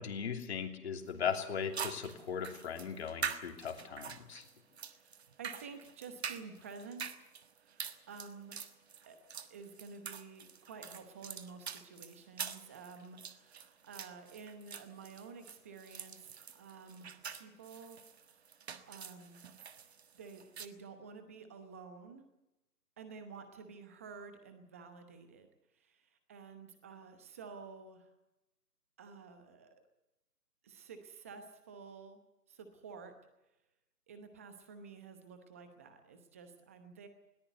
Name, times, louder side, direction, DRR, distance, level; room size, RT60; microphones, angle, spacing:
voice 1, 0.0-4.4, left 7 dB, 40° left, 5 dB, 3.1 m, -38 dB
sound 1, 1.1-1.2 1.7-20.7, right 7 dB, 40° right, 1.6 m, -45 dB
voice 2, 4.9-7.0 7.6-8.6 9.1-9.2 9.5-18.3 18.9-19.4 20.1-22.2 23.0-25.5 25.7-28.1 29.0-29.8 30.6-32.2 32.5-33.1 34.1-37.1, right 5 dB, 10° right, 8 dB, 0.9 m, -51 dB
21.5 x 18.5 x 8.1 m, 0.93 s
figure-of-eight pair, 155°, 48 cm